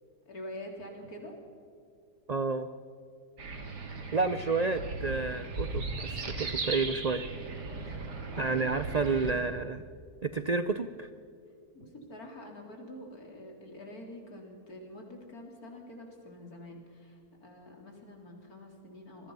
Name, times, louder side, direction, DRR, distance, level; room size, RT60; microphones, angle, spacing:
voice 1, 0.3-1.4 7.6-9.2 11.7-19.3, left 1 dB, 60° left, 1 dB, 4.1 m, -46 dB
voice 2, 2.3-2.7 4.1-7.3 8.4-9.8 10.2-11.1, right 4 dB, 60° right, 11 dB, 0.4 m, -30 dB
sound 1, 3.4-9.3, right 3 dB, 80° right, 2.8 m, -37 dB
27.0 x 20.5 x 5.6 m, 2.3 s
omnidirectional pair, 1.7 m